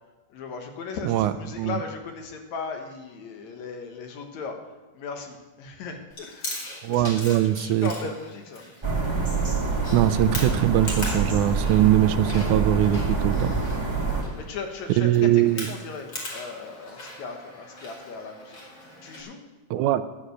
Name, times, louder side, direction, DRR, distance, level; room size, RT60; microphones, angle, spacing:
voice 1, 0.3-4.6 4.9-8.6 14.1-18.6 19.0-19.4, left 5 dB, 65° left, 4 dB, 2.4 m, -37 dB
voice 2, 1.1-1.8 6.8-7.9 9.9-13.5 15.0-15.7 19.7-20.0, right 13 dB, 80° right, 12 dB, 1.9 m, -21 dB
Chewing mastication, 6.1-19.2, left 2 dB, 35° left, 2.6 m, -40 dB
sound 1, 8.8-14.2, right 3 dB, 20° right, 0.7 m, -26 dB
11.0 x 8.7 x 6.5 m, 1.2 s
omnidirectional pair, 3.8 m